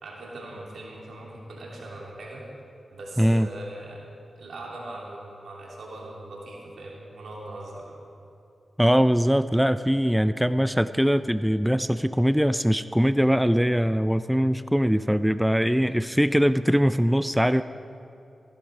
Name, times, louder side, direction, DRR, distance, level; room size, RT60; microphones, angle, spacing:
voice 1, 0.0-2.4 2.9-4.0 4.4-8.0, right 1 dB, 80° right, -3 dB, 3.0 m, -40 dB
voice 2, 3.2-3.5 8.8-17.6, equal, 5° right, 13 dB, 0.4 m, -22 dB
15.5 x 10.5 x 4.9 m, 2.7 s
cardioid pair, 50°, 0 cm